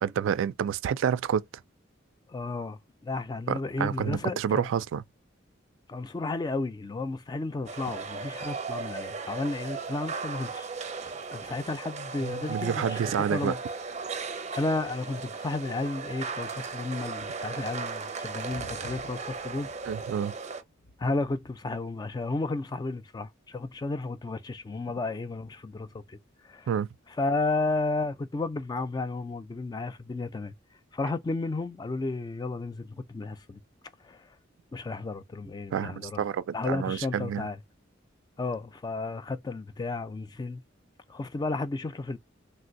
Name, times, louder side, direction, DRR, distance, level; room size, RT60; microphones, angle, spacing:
voice 1, 0.0-1.5 3.5-5.0 12.5-13.5 19.9-20.3 26.7-26.9 35.7-37.4, right 8 dB, 85° right, 0.3 m, -28 dB
voice 2, 2.3-4.7 5.9-10.7 11.0-13.0 13.3-13.6 14.5-19.7 21.0-26.2 26.4-26.7 27.2-30.5 30.9-33.6 34.0-34.3 34.7-36.2 36.5-37.6 38.4-40.6 41.1-42.2, left 3 dB, 20° left, 0.3 m, -33 dB
sound 1, 7.7-20.6, right 4 dB, 35° right, 0.6 m, -36 dB
sound 2, 17.0-17.8 18.2-21.5, left 1 dB, 55° left, 0.6 m, -51 dB
3.2 x 2.6 x 2.5 m
head